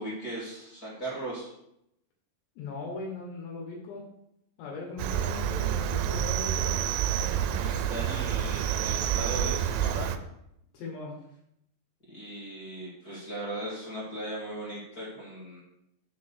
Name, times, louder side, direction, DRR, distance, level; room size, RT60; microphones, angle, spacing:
voice 1, 0.0-1.5 7.6-10.1 12.1-15.6, right 1 dB, 30° left, -7 dB, 1.8 m, -38 dB
voice 2, 2.6-4.0 4.6-6.8 10.7-11.1, left 3 dB, 70° left, -1 dB, 3.2 m, -39 dB
Cricket, 5.0-10.2, right 10 dB, 85° right, 2.6 m, -28 dB
7.3 x 4.1 x 6.5 m, 0.79 s
omnidirectional pair, 5.4 m